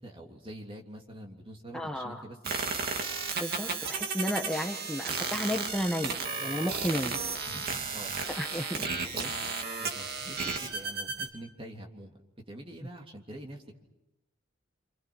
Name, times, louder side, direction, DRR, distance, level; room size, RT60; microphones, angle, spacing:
voice 1, 0.0-3.0 7.5-8.4 9.1-9.5 9.8-10.4 10.6-12.1 12.5-13.8, right 1 dB, 25° right, 1 dB, 3.1 m, -45 dB
voice 2, 1.7-2.2 3.4-7.2 8.2-9.1, equal, 5° left, 2 dB, 1.3 m, -33 dB
sound 1, 2.4-11.3, right 4 dB, 50° right, 2.8 m, -34 dB
28.0 x 27.5 x 6.3 m, 0.93 s
head